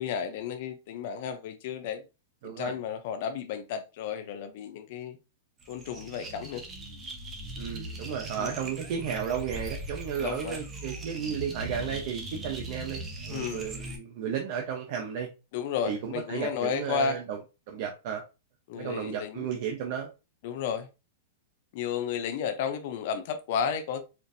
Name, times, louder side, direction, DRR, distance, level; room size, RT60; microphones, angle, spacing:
voice 1, 0.0-2.0 2.4-5.2 5.7-6.6 8.4-8.6 10.2-10.6 13.3-13.6 15.5-17.2 18.7-19.5 20.4-20.9 21.7-24.0, left 7 dB, 55° left, 0.5 m, -32 dB
voice 2, 2.4-2.7 7.6-15.3 15.8-17.4 17.7-18.2 18.8-20.1, right 8 dB, 50° right, 0.7 m, -33 dB
sound 1, 5.6-14.0, right 2 dB, 20° right, 0.9 m, -39 dB
4.4 x 2.6 x 2.6 m
supercardioid pair, 145°, 0 cm